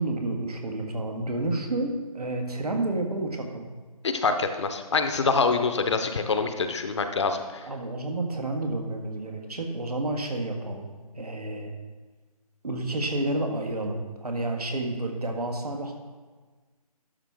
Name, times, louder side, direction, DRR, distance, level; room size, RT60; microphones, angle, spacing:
voice 1, 0.0-3.7 7.7-10.9 11.2-11.7 12.6-15.9, right 2 dB, 80° right, 2 dB, 1.7 m, -30 dB
voice 2, 4.0-7.6, left 4 dB, 50° left, 7 dB, 0.7 m, -25 dB
11.5 x 5.8 x 3.6 m, 1.4 s
figure-of-eight pair, 155°, 20 cm